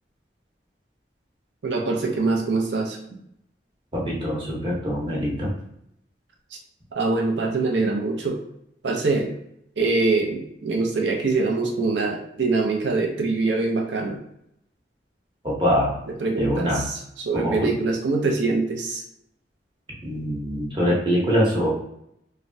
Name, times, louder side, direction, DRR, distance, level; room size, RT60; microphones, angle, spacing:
voice 1, 1.6-3.0 6.9-8.4 8.8-9.4 9.8-14.2 16.2-17.0 17.2-19.0, right 3 dB, 90° right, 1 dB, 0.6 m, -24 dB
voice 2, 3.9-5.5 15.4-16.0 16.4-16.9 17.3-17.7 20.0-21.7, equal, 25° right, -4 dB, 0.8 m, -24 dB
3.2 x 2.1 x 2.6 m, 0.77 s
head